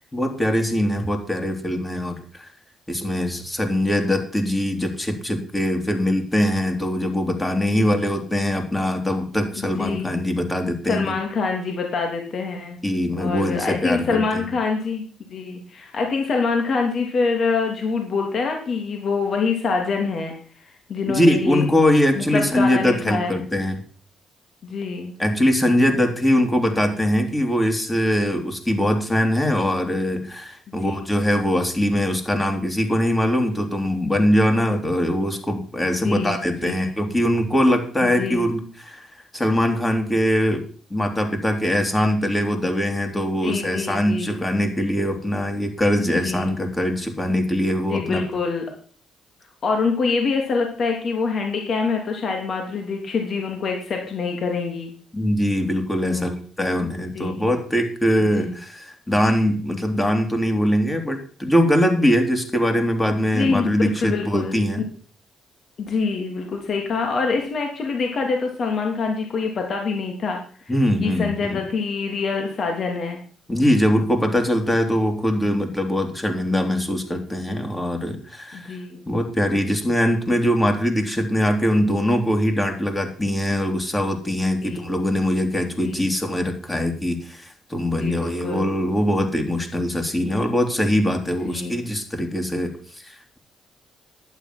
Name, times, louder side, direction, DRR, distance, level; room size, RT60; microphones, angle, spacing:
voice 1, 0.1-2.5 2.9-11.2 12.8-14.4 21.1-23.8 25.2-40.6 40.9-48.2 55.1-56.3 56.6-64.8 70.7-71.6 73.5-78.8 79.1-93.4, equal, 15° left, 5 dB, 3.2 m, -22 dB
voice 2, 9.6-10.1 10.9-12.8 13.1-15.0 15.3-21.7 22.1-23.4 24.6-25.1 30.8-31.0 36.0-36.4 36.6-36.8 38.0-38.4 43.4-44.4 46.2-46.6 47.9-48.6 49.6-54.9 56.0-56.7 57.1-57.5 58.4-58.5 63.1-64.9 65.8-70.7 71.0-73.2 78.5-79.0 84.6-84.9 85.8-86.0 87.9-88.7 91.2-91.8, left 4 dB, 55° left, 2 dB, 3.1 m, -25 dB
11.5 x 9.6 x 6.1 m, 0.43 s
cardioid pair, 90°, 0 cm